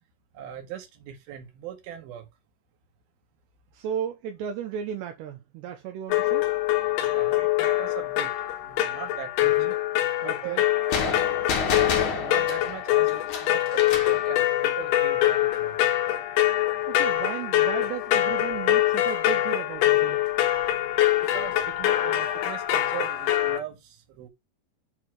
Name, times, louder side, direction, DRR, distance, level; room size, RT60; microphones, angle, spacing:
voice 1, 0.3-2.3 7.1-8.3 8.6-9.6 10.2-11.4 12.1-15.9 21.3-24.3, right 9 dB, 60° right, 3.0 m, -40 dB
voice 2, 3.7-6.5 9.4-9.8 10.2-10.6 16.9-20.2, right 8 dB, 80° right, 2.6 m, -35 dB
sound 1, 6.1-23.6, left 14 dB, 80° left, 2.4 m, -24 dB
sound 2, 10.9-14.2, left 5 dB, 60° left, 2.1 m, -29 dB
8.0 x 4.2 x 6.5 m
omnidirectional pair, 5.9 m